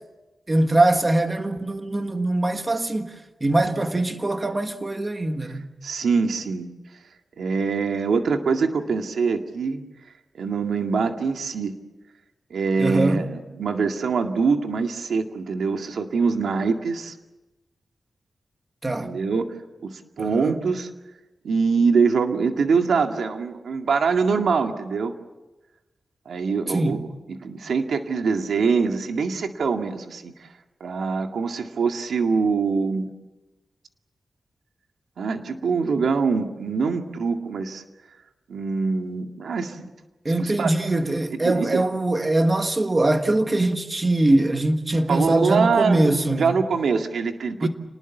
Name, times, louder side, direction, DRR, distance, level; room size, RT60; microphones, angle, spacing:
voice 1, 0.5-3.2 3.4-5.7 12.8-13.2 18.8-19.1 20.2-20.6 26.7-27.1 40.3-46.6 47.6-47.7, right 2 dB, 20° right, 1.6 m, -22 dB
voice 2, 5.8-6.7 7.4-9.8 10.4-11.8 12.5-17.1 19.0-19.5 19.8-20.9 21.4-25.1 26.3-27.0 27.3-30.5 30.8-33.1 35.2-37.8 38.5-39.9 40.4-40.7 41.4-41.9 45.1-47.7, right 5 dB, 90° right, 2.0 m, -24 dB
29.0 x 20.0 x 7.3 m
wide cardioid pair, 175°, 0 cm